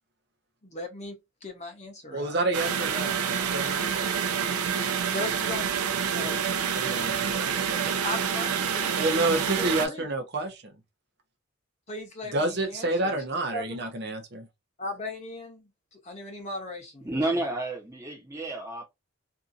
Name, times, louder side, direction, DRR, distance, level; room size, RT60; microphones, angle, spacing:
voice 1, 0.6-2.3 5.1-5.7 6.1-6.5 8.0-9.0 9.4-10.1 11.9-13.2 13.5-13.8 14.8-17.1, left 2 dB, 30° left, 0.8 m, -38 dB
voice 2, 2.1-4.1 6.7-8.0 9.0-10.7 12.3-14.5, right 2 dB, 50° right, 0.7 m, -29 dB
sound 1, 2.5-9.9, right 7 dB, 90° right, 0.5 m, -27 dB
voice 3, 17.0-18.8, right 2 dB, 15° right, 0.8 m, -30 dB
2.7 x 2.5 x 2.5 m
head